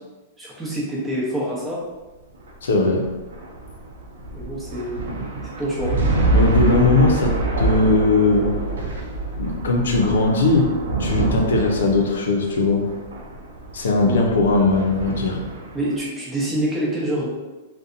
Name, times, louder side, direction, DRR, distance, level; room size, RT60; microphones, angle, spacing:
voice 1, 0.4-1.8 4.3-5.0 5.4-5.9 14.0-14.2 15.7-17.3, right 1 dB, 10° right, -6 dB, 0.8 m, -26 dB
sound 1, 2.3-15.9, right 2 dB, 85° right, 0.5 m, -26 dB
voice 2, 2.6-3.0 6.3-8.5 9.3-10.7 11.0-12.8 13.7-15.4, left 3 dB, 85° left, 1 dB, 0.5 m, -19 dB
2.6 x 2.1 x 2.5 m, 1.2 s
hypercardioid pair, 130°, 0 cm